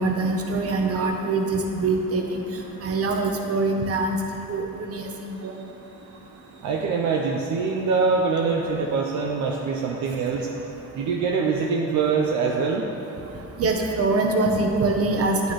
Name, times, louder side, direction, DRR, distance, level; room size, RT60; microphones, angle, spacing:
voice 1, 0.0-2.4 2.8-4.2 4.5-5.1 5.4-5.5 13.6-15.5, right 3 dB, 50° right, 2 dB, 0.9 m, -24 dB
voice 2, 6.6-10.5 10.9-12.9, right 5 dB, 70° right, 0 dB, 0.7 m, -24 dB
8.9 x 6.6 x 3.2 m, 2.9 s
cardioid pair, 90°, 30 cm